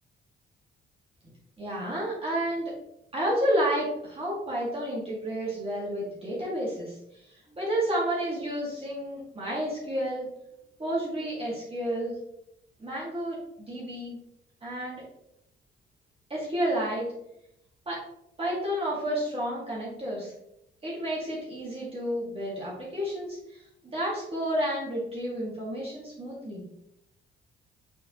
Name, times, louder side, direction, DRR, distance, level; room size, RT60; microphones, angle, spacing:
voice 1, 1.6-2.7 3.1-10.3 10.8-12.2 12.8-14.2 14.6-15.0 16.3-17.1 17.9-18.0 18.4-20.3 20.8-26.6, right 1 dB, 30° right, -6 dB, 2.3 m, -31 dB
8.2 x 4.3 x 3.1 m, 0.80 s
cardioid pair, 90°, 20 cm